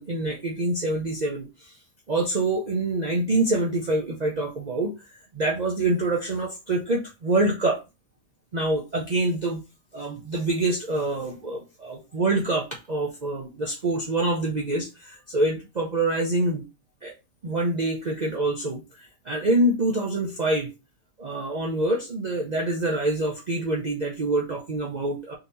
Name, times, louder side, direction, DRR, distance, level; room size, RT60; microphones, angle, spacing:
voice 1, 0.0-1.7 2.1-5.0 5.3-7.8 8.5-9.6 9.9-16.6 17.0-17.1 17.4-20.7 21.2-25.3, right 2 dB, 40° right, -2 dB, 0.6 m, -26 dB
3.9 x 2.9 x 3.9 m, 0.27 s
omnidirectional pair, 1.5 m